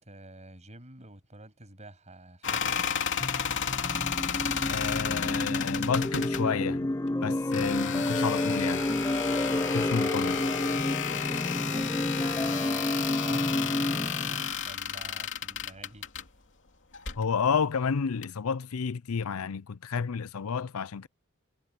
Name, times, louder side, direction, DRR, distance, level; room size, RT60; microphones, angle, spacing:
voice 1, 0.0-2.9 11.6-16.1, right 1 dB, 35° right, 7.1 m, -49 dB
sound 1, 2.4-6.4 7.5-16.2 16.9-17.2 18.2-18.3, left 7 dB, 60° left, 2.8 m, -32 dB
sound 2, 3.2-14.6, left 1 dB, 15° left, 0.5 m, -30 dB
voice 2, 4.7-6.9 7.2-8.8 9.7-10.4 17.2-21.1, left 6 dB, 85° left, 0.6 m, -30 dB
head